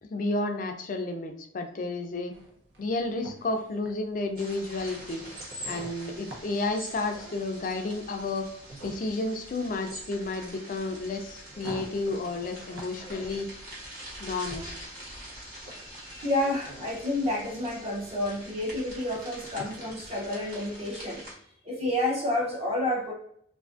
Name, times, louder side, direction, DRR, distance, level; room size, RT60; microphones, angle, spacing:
voice 1, 0.0-2.3 2.8-5.2 5.7-8.5 8.8-13.5 14.2-14.7, left 2 dB, 45° left, 5 dB, 0.3 m, -31 dB
sound 1, 2.3-17.0, right 1 dB, 75° right, 0.6 m, -48 dB
sound 2, 4.4-21.3, right 1 dB, 50° right, 1.1 m, -44 dB
voice 2, 15.7-21.2 21.6-23.1, left 1 dB, 30° right, -3 dB, 0.6 m, -30 dB
2.4 x 2.4 x 2.4 m, 0.67 s
head